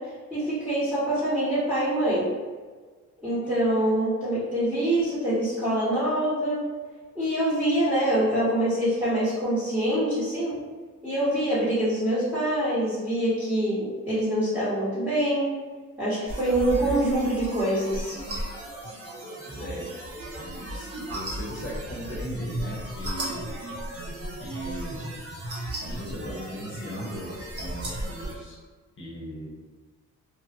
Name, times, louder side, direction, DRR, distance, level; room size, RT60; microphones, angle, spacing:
voice 1, 0.3-2.3 3.2-6.6 7.1-10.5 11.0-15.5 16.0-18.1, right 1 dB, 5° right, -12 dB, 1.2 m, -25 dB
sound 1, 16.3-28.3, right 1 dB, 50° right, 1.2 m, -35 dB
voice 2, 19.6-19.9 20.4-23.6 24.4-25.1 25.8-28.6 29.0-29.5, equal, 40° left, -4 dB, 0.9 m, -38 dB
3.1 x 2.4 x 2.9 m, 1.4 s
cardioid pair, 90°, 30 cm